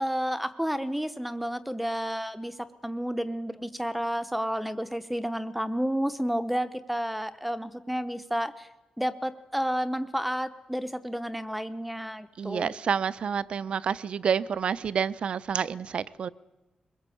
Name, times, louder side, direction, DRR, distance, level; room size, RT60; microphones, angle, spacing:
voice 1, 0.0-8.7 9.0-12.7, equal, 5° right, 12 dB, 0.9 m, -31 dB
voice 2, 12.4-16.3, right 7 dB, 50° right, 17 dB, 0.7 m, -29 dB
23.0 x 21.5 x 8.5 m, 1.1 s
wide cardioid pair, 165°, 2 cm